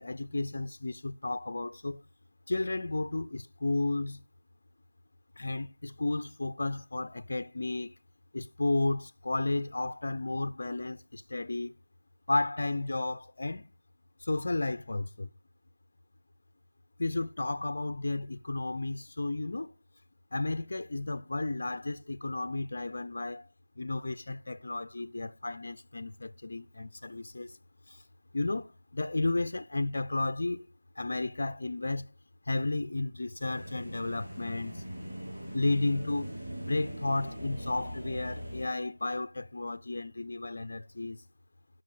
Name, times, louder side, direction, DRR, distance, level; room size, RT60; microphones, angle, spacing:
voice 1, 0.0-2.0 2.5-4.2 5.4-7.9 8.3-11.7 12.3-13.7 14.2-15.3 17.0-19.7 20.3-23.5 23.8-27.6 27.9-28.0 28.3-30.7 31.0-32.1 32.5-34.8 35.5-36.3 36.6-41.2, left 2 dB, 30° left, 0.4 m, -33 dB
sound 1, 33.4-38.7, equal, 15° right, 7.0 m, -41 dB
12.5 x 5.9 x 4.7 m
figure-of-eight pair, 175°, 0 cm